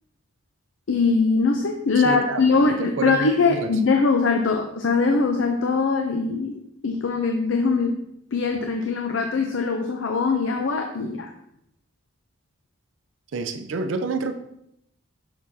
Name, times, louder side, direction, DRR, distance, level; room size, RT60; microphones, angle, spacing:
voice 1, 0.9-6.6 6.8-8.0 8.3-11.3, left 4 dB, 75° left, 4 dB, 0.6 m, -22 dB
voice 2, 2.0-3.7 13.3-14.3, right 3 dB, 75° right, 8 dB, 0.5 m, -29 dB
6.6 x 5.9 x 2.7 m, 0.78 s
head